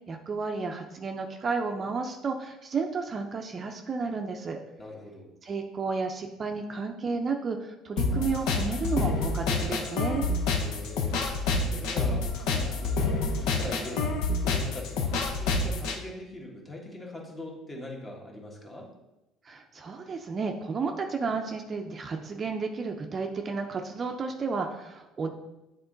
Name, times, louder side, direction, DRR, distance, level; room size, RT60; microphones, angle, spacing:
voice 1, 0.1-4.6 5.4-10.3 19.5-25.3, right 4 dB, 35° right, 4 dB, 0.5 m, -32 dB
voice 2, 4.8-5.3 10.6-11.2 11.6-14.1 14.4-18.9, left 1 dB, 20° left, -1 dB, 1.4 m, -42 dB
sound 1, 8.0-16.0, left 3 dB, 75° left, 0.8 m, -28 dB
7.9 x 3.7 x 3.9 m, 0.97 s
cardioid pair, 110°, 0 cm